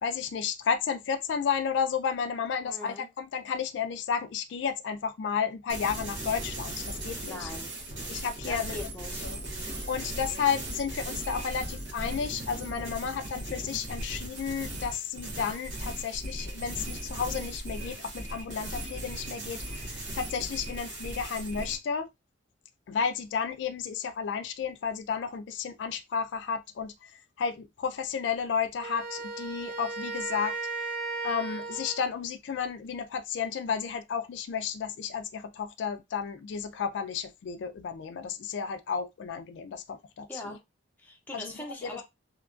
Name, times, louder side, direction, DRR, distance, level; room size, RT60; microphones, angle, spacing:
voice 1, 0.0-7.5 8.1-8.7 9.2-9.4 9.6-22.1 22.9-26.9 27.4-30.6 31.2-40.6 41.3-41.5 41.8-41.9, left 6 dB, 70° left, 0.3 m, -32 dB
voice 2, 2.6-3.1 7.3-7.7 8.5-9.2 40.3-40.6 41.0-42.0, left 1 dB, 10° left, 0.6 m, -41 dB
sound 1, 5.7-21.8, right 1 dB, 90° right, 1.0 m, -38 dB
Wind instrument woodwind instrument, 28.8-32.2, right 3 dB, 50° right, 0.5 m, -35 dB
2.8 x 2.3 x 2.4 m
head